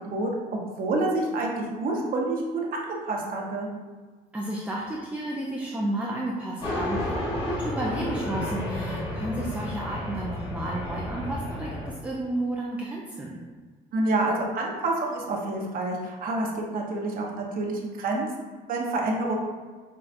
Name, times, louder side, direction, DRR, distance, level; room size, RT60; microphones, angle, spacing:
voice 1, 0.1-3.7 13.9-16.5 16.7-18.3 18.5-19.4, right 2 dB, 55° right, -1 dB, 0.8 m, -28 dB
voice 2, 4.3-13.4, right 1 dB, 10° right, -3 dB, 0.4 m, -32 dB
sound 1, 6.6-11.9, left 1 dB, 30° left, 1.4 m, -32 dB
5.4 x 2.3 x 2.5 m, 1.4 s
cardioid pair, 110°, 17 cm